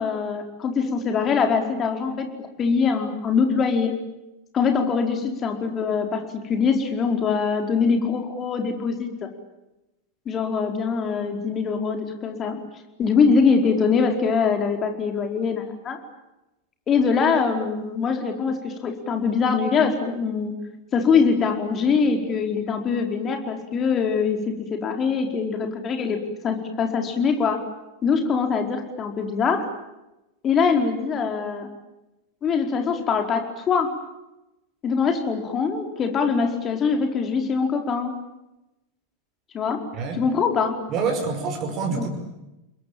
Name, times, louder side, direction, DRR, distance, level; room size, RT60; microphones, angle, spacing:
voice 1, 0.0-3.9 4.5-9.1 10.2-12.6 13.0-16.0 16.9-20.6 20.9-26.2 26.4-27.6 28.0-29.6 30.4-31.7 32.4-33.9 34.8-38.1 39.5-39.8 40.1-40.8 42.0-42.1, left 5 dB, 25° left, 4 dB, 4.7 m, -23 dB
voice 2, 40.9-42.1, right 5 dB, 35° right, 4 dB, 5.5 m, -26 dB
30.0 x 22.0 x 9.0 m, 0.95 s
figure-of-eight pair, 90°, 0 cm